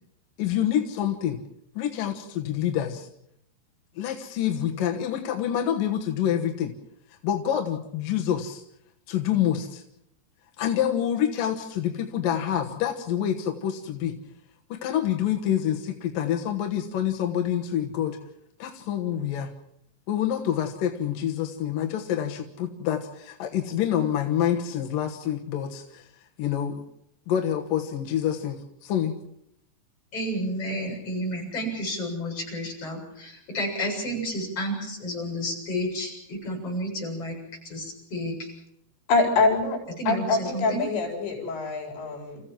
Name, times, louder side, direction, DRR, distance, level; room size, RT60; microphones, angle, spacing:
voice 1, 0.4-1.4 1.8-3.1 4.0-6.7 7.2-8.6 9.1-9.8 10.6-14.2 14.7-18.2 18.6-19.5 20.1-26.1 26.4-26.8 27.3-29.2, left 10 dB, 65° left, 3 dB, 2.5 m, -27 dB
voice 2, 30.1-37.4 37.6-38.5 40.0-40.9, equal, 30° left, -3 dB, 8.5 m, -31 dB
voice 3, 39.1-39.8 40.1-42.4, left 3 dB, 85° left, 1 dB, 6.8 m, -24 dB
29.0 x 15.5 x 7.6 m, 0.76 s
omnidirectional pair, 5.1 m